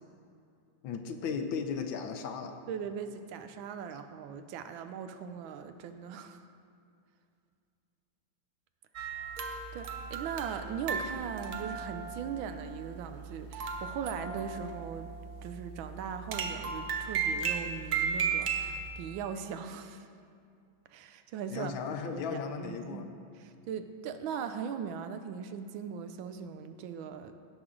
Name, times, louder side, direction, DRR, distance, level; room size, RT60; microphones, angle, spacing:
voice 1, 0.8-2.6 21.5-23.1, left 5 dB, 75° left, 7 dB, 1.4 m, -36 dB
voice 2, 2.7-6.5 9.7-15.1 15.4-20.1 20.9-21.7 22.0-23.0 23.4-27.4, right 7 dB, 80° right, 9 dB, 1.3 m, -39 dB
sound 1, 9.0-18.9, right 6 dB, 60° right, 1.1 m, -36 dB
16.0 x 6.2 x 3.7 m, 2.4 s
omnidirectional pair, 2.2 m